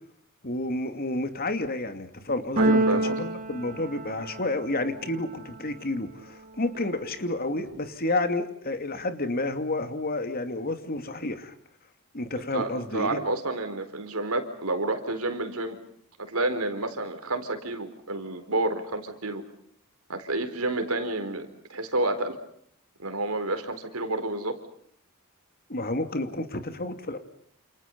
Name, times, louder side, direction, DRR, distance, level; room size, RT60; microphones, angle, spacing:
voice 1, 0.4-11.5 12.1-13.2 25.7-27.2, left 2 dB, 45° left, 8 dB, 2.6 m, -30 dB
Keyboard (musical), 2.6-4.7, right 2 dB, 40° right, 1.9 m, -26 dB
voice 2, 2.6-3.2 6.8-6.9 12.5-15.8 16.2-19.4 20.1-22.4 23.0-24.6, right 2 dB, 80° right, 8 dB, 4.2 m, -30 dB
29.0 x 28.5 x 5.4 m, 0.65 s
head